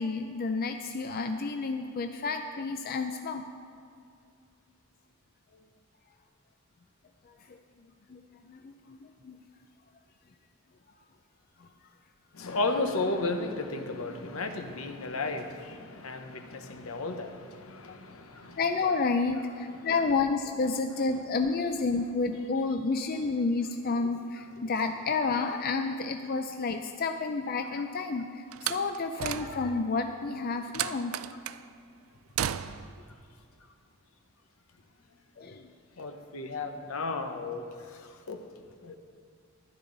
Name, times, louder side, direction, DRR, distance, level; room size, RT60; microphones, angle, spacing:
voice 1, 0.0-3.4 7.3-7.6 8.1-8.2 8.5-9.4 11.6-11.7 17.9-18.0 18.6-31.1 35.4-35.7, left 4 dB, 45° left, 6 dB, 0.5 m, -30 dB
voice 2, 12.3-18.6 36.0-37.7 37.9-38.0 38.3-38.4 38.8-39.0, left 3 dB, 75° left, 6 dB, 0.9 m, -33 dB
Slam, 28.5-29.9 30.7-31.6 32.4-33.0, right 10 dB, 80° right, 0.4 m, -34 dB
13.5 x 11.5 x 4.0 m, 2.2 s
head